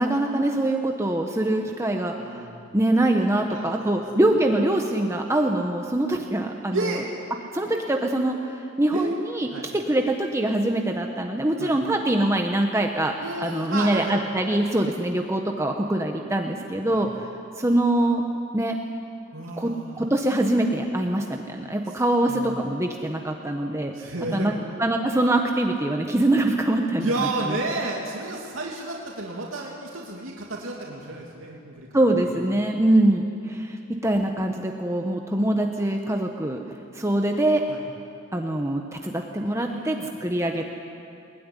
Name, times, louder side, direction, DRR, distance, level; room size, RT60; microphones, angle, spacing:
voice 1, 0.0-2.4 2.7-7.0 7.5-8.4 8.8-13.1 13.4-17.1 17.6-18.2 18.5-18.8 19.6-23.9 24.3-27.3 31.9-33.8 34.0-36.6 36.9-37.6 38.3-40.6, right 1 dB, 15° right, 2 dB, 1.2 m, -23 dB
voice 2, 2.2-2.7 3.5-4.0 6.7-7.0 8.9-9.1 9.5-9.6 11.6-11.7 13.2-14.2 16.8-17.1 19.3-20.1 21.9-22.0 22.3-22.5 23.9-24.8 27.0-32.4 37.7-37.8 39.6-40.1, right 2 dB, 85° right, -2 dB, 2.8 m, -32 dB
21.0 x 21.0 x 10.0 m, 2.6 s
head